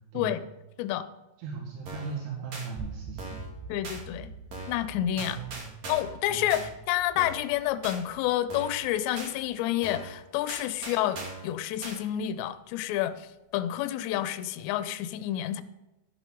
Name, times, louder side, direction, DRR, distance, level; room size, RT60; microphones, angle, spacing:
voice 1, 1.4-3.5 5.1-5.7 6.3-6.7, right 5 dB, 85° right, -1 dB, 4.2 m, -38 dB
sound 1, 1.9-2.2 2.5-2.7 3.2-3.5 3.8-4.0 4.5-4.8 5.2-6.2 6.5-6.7 7.2-7.5 7.8-8.0 8.5-8.8 9.2-9.3 9.8-10.1 10.5-11.5 11.8-12.0, right 2 dB, 45° right, 2.7 m, -40 dB
sound 2, 2.8-12.8, right 3 dB, 65° right, 6.7 m, -47 dB
voice 2, 3.7-4.3 4.7-5.4 5.9-11.2 11.4-15.6, left 12 dB, 80° left, 12 dB, 2.7 m, -29 dB
12.5 x 12.0 x 3.8 m, 1.0 s
omnidirectional pair, 5.5 m